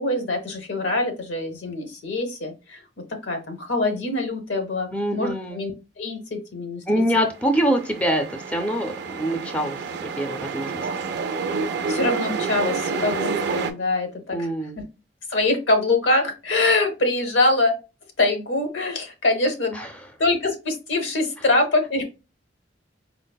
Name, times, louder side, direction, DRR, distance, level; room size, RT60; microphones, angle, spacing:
voice 1, 0.0-2.8 3.2-5.7 6.0-7.0 11.5-14.5 15.3-17.7 18.2-19.8 20.2-22.0, left 2 dB, 80° left, 0.8 m, -24 dB
voice 2, 4.9-5.6 6.9-10.9 14.3-14.8 19.7-19.9, equal, 5° left, 0.4 m, -25 dB
sound 1, 7.3-13.7, right 5 dB, 60° right, 0.4 m, -28 dB
4.5 x 2.0 x 2.2 m
head